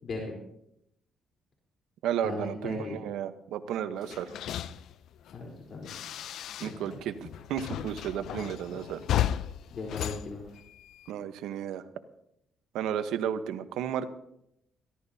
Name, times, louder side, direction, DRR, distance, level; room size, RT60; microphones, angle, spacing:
voice 1, 0.0-0.3 2.2-3.0 5.3-6.0 6.6-7.0 9.7-10.4, left 3 dB, 55° left, -1 dB, 3.8 m, -38 dB
voice 2, 2.0-4.3 6.6-9.0 11.1-11.8 12.7-14.1, right 9 dB, 85° right, 10 dB, 1.0 m, -33 dB
sound 1, 4.0-7.0 7.2-11.1, left 11 dB, 75° left, 0.5 m, -35 dB
22.5 x 15.5 x 2.8 m, 0.79 s
cardioid pair, 90°, 0 cm